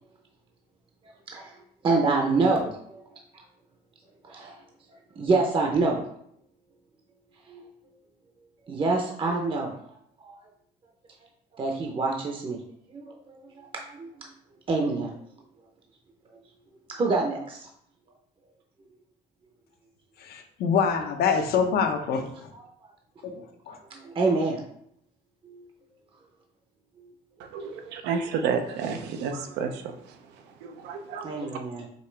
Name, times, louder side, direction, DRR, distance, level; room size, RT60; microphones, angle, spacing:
voice 1, 1.0-3.0 3.3-3.4 4.2-4.6 5.2-6.0 7.5-7.7 8.7-9.8 10.2-10.4 11.5-12.6 12.9-14.3 14.7-15.1 16.9-17.7 22.5-22.6 23.7-24.6 25.4-25.7 27.0-27.1 27.5-27.7 31.2-31.9, right 3 dB, 30° right, 0 dB, 0.7 m, -27 dB
voice 2, 20.3-22.3 23.2-23.8, left 6 dB, 70° left, 5 dB, 0.7 m, -25 dB
voice 3, 27.4-30.2 30.6-31.5, right 6 dB, 90° right, 6 dB, 0.6 m, -31 dB
5.2 x 2.9 x 3.3 m, 0.71 s
cardioid pair, 110°, 17 cm